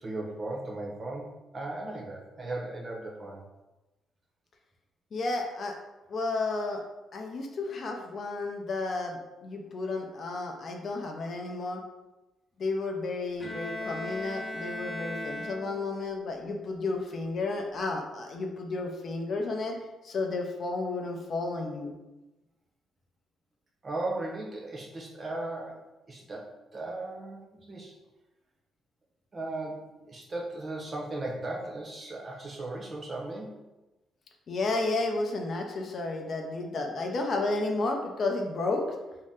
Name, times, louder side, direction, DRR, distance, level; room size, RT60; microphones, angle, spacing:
voice 1, 0.0-1.3 1.5-3.4 23.8-25.8 26.1-27.4 27.7-27.9 29.3-33.5, right 2 dB, 35° right, -1 dB, 0.7 m, -36 dB
voice 2, 5.1-5.8 6.1-6.8 7.1-11.8 12.6-19.8 20.0-21.9 34.5-38.9, left 3 dB, 50° left, 2 dB, 0.5 m, -32 dB
Bowed string instrument, 13.4-16.1, left 1 dB, 10° left, 0.8 m, -37 dB
2.7 x 2.1 x 3.5 m, 1.1 s
cardioid pair, 90°, 0 cm